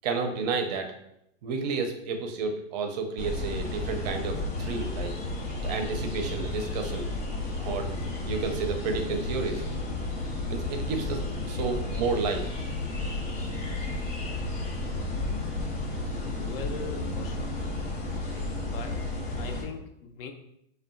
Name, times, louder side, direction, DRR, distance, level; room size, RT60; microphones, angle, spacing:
voice 1, 0.0-0.9 1.4-5.1 5.6-7.1 7.6-7.9 8.3-9.6 10.5-11.2 11.5-12.4 16.8-16.9, right 4 dB, 40° right, 5 dB, 0.4 m, -31 dB
sound 1, 3.2-19.6, left 2 dB, 85° left, 1.0 m, -32 dB
voice 2, 16.4-17.5 18.1-19.0 19.4-20.3, left 6 dB, 65° left, 5 dB, 0.5 m, -41 dB
2.6 x 2.2 x 2.5 m, 0.76 s
hypercardioid pair, 145°, 31 cm